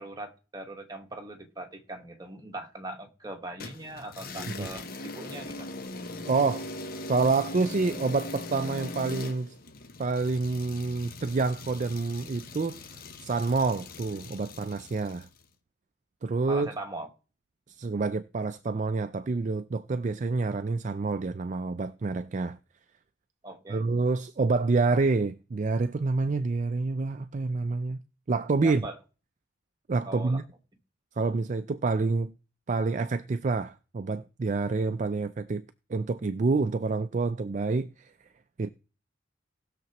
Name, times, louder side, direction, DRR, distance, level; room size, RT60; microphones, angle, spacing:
voice 1, 0.0-5.7 16.5-17.1 23.4-23.8 28.6-28.9 30.1-30.4, right 2 dB, 20° right, 1.4 m, -40 dB
sound 1, 3.6-15.4, left 2 dB, 50° left, 0.9 m, -40 dB
voice 2, 6.3-6.7 7.1-9.6 10.0-12.9 13.2-15.3 16.2-16.7 17.7-22.6 23.7-28.0 28.3-28.9 29.9-30.4 31.2-32.3 32.7-35.6 35.9-38.1 38.6-38.7, right 3 dB, 40° right, 0.4 m, -28 dB
18.5 x 6.8 x 3.0 m
head